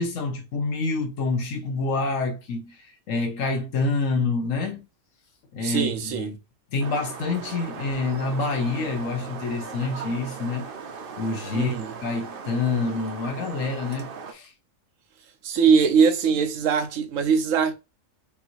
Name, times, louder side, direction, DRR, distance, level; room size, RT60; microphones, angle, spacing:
voice 1, 0.0-4.9 5.5-6.4 6.7-10.7 11.2-14.5, left 3 dB, 75° left, 1.2 m, -27 dB
voice 2, 5.6-6.3 11.5-11.9 15.4-17.7, right 6 dB, 75° right, 1.0 m, -21 dB
sound 1, 6.8-14.3, right 5 dB, 55° right, 0.7 m, -38 dB
5.3 x 2.6 x 3.0 m
omnidirectional pair, 1.4 m